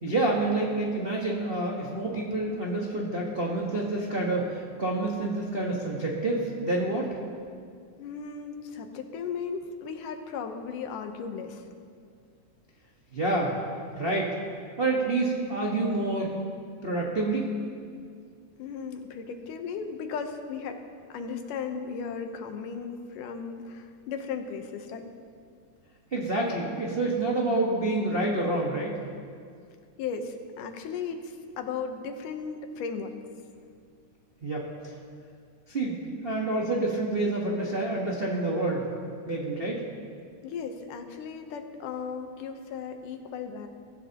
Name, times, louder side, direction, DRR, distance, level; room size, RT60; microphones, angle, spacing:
voice 1, 0.0-7.1 13.1-13.5 13.9-14.3 14.8-16.3 16.8-17.5 26.1-28.9 34.4-34.7 35.7-38.9 39.3-39.8, right 2 dB, 50° right, -4 dB, 0.6 m, -28 dB
voice 2, 8.0-11.7 18.6-20.8 21.1-25.1 30.0-33.1 40.4-43.7, left 6 dB, 85° left, 6 dB, 2.6 m, -36 dB
23.5 x 14.0 x 2.9 m, 2.2 s
omnidirectional pair, 3.6 m